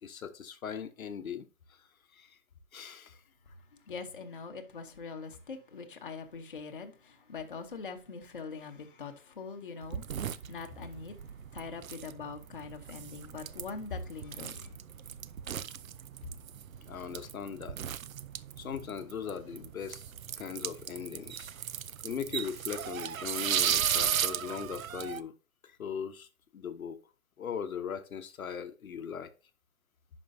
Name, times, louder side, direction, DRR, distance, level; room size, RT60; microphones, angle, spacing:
voice 1, 0.0-2.4 2.7-3.2 16.8-17.8 18.6-20.0 20.4-21.5 22.0-25.3 25.6-26.3 26.5-27.0 27.4-29.3, left 7 dB, 65° left, 0.9 m, -39 dB
voice 2, 3.7-11.2 11.5-14.7, left 5 dB, 35° left, 0.9 m, -43 dB
sound 1, 9.8-25.2, right 9 dB, 65° right, 0.6 m, -36 dB
10.5 x 5.2 x 2.6 m
hypercardioid pair, 180°, 44 cm